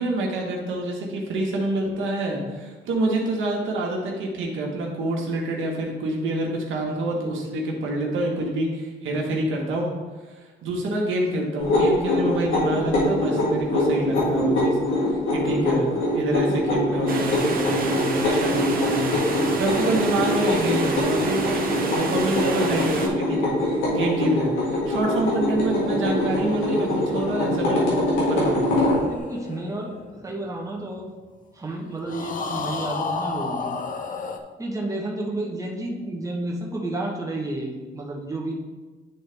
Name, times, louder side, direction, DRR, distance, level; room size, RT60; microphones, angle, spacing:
voice 1, 0.0-9.9 10.6-14.8 15.3-15.9 16.1-21.6 21.9-27.9 28.3-28.8, right 1 dB, 80° right, -1 dB, 1.4 m, -26 dB
sound 1, 11.6-29.0, left 1 dB, 90° left, 2.2 m, -23 dB
sound 2, 17.1-23.1, right 3 dB, 45° right, 1.1 m, -30 dB
sound 3, 25.4-31.0 32.1-34.4, left 4 dB, 45° left, 0.7 m, -34 dB
voice 2, 29.1-31.1 31.5-33.7 34.6-38.5, right 2 dB, 15° right, -2 dB, 1.3 m, -31 dB
10.0 x 3.8 x 3.4 m, 1.3 s
cardioid pair, 90°, 20 cm